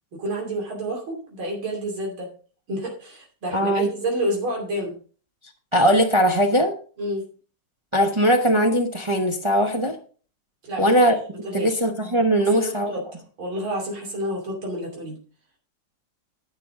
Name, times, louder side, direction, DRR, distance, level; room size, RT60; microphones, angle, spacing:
voice 1, 0.1-2.3 2.7-5.0 7.0-7.2 10.6-10.9 11.4-11.8 12.5-13.0 13.4-15.2, right 1 dB, 80° right, -1 dB, 3.7 m, -29 dB
voice 2, 3.5-3.9 5.7-6.7 7.9-9.9 10.8-11.2 11.5-12.9, equal, 20° right, 3 dB, 0.8 m, -20 dB
11.0 x 8.6 x 3.7 m, 0.40 s
omnidirectional pair, 2.2 m